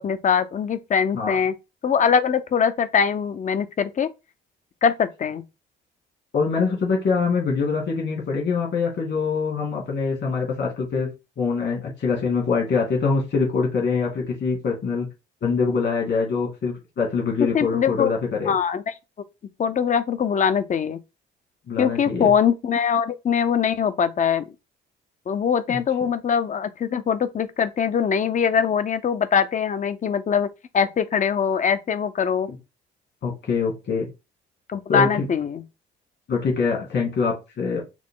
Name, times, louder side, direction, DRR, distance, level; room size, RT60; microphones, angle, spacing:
voice 1, 0.0-1.5 1.8-4.1 4.8-5.4 17.5-18.1 18.5-18.9 19.6-21.0 21.8-24.4 25.3-32.5 34.7-35.6, left 7 dB, 40° left, 0.6 m, -22 dB
voice 2, 6.3-11.1 11.4-15.1 15.4-18.5 21.7-22.3 25.7-26.1 32.5-32.6 33.2-34.1 34.9-35.3 36.3-37.8, left 5 dB, 60° left, 2.3 m, -24 dB
6.1 x 2.1 x 3.7 m
cardioid pair, 90°, 20 cm